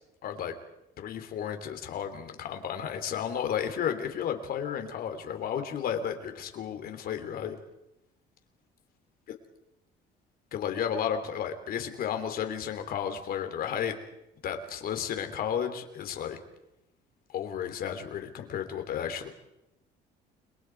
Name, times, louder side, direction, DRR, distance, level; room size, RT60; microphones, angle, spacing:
voice 1, 0.2-0.5 1.0-7.6 10.5-13.9 14.4-16.4 17.3-19.3, left 8 dB, 60° left, 7 dB, 3.5 m, -33 dB
29.5 x 23.5 x 4.8 m, 0.88 s
cardioid pair, 110°, 17 cm